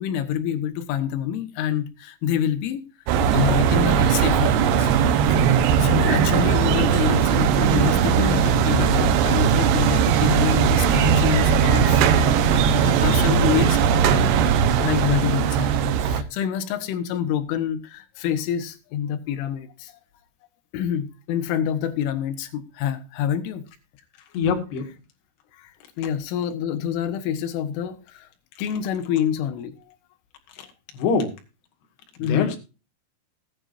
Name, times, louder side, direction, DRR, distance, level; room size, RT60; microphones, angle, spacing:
voice 1, 0.0-2.8 3.3-4.9 5.3-5.5 5.8-13.8 14.1-14.5 14.8-15.8 16.0-20.0 20.7-23.7 25.5-28.3 28.6-30.0 32.2-32.6, left 9 dB, 85° left, 10 dB, 3.9 m, -27 dB
sound 1, 3.1-16.2, right 7 dB, 70° right, 2.9 m, -19 dB
voice 2, 5.8-6.3 24.3-24.9 30.6-30.7 30.9-31.3 32.2-32.6, left 5 dB, 65° left, 4 dB, 3.9 m, -25 dB
20.0 x 9.9 x 2.6 m, 0.31 s
omnidirectional pair, 5.6 m